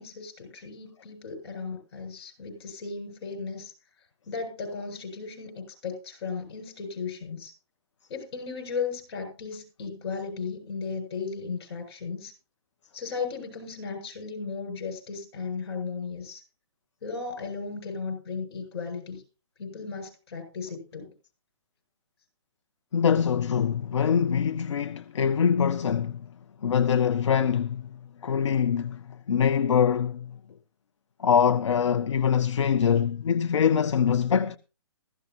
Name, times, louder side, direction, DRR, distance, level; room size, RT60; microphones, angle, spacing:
voice 1, 0.0-3.7 4.3-7.5 8.1-12.3 12.9-16.4 17.0-19.2 19.6-21.1, left 5 dB, 55° left, 7.7 m, -35 dB
voice 2, 22.9-26.3 26.6-30.3 31.2-34.6, left 7 dB, 75° left, 0.6 m, -24 dB
15.0 x 15.0 x 2.9 m
hypercardioid pair, 135°, 16 cm